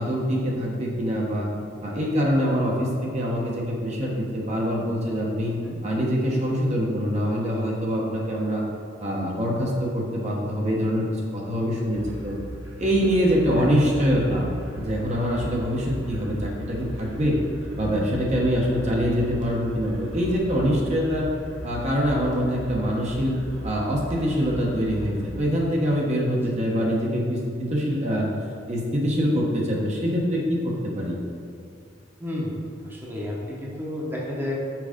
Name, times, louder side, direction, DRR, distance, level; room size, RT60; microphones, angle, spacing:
voice 1, 0.0-1.5 1.8-5.5 5.8-8.6 9.0-12.3 12.8-14.5 14.8-17.4 17.8-21.3 21.6-23.4 23.6-28.3 28.7-31.2, equal, 35° right, -3 dB, 1.0 m, -24 dB
sound 1, 11.9-25.4, right 1 dB, 85° right, 1.3 m, -36 dB
voice 2, 32.2-34.5, left 1 dB, 10° right, -5 dB, 1.0 m, -32 dB
6.0 x 4.8 x 5.0 m, 2.3 s
head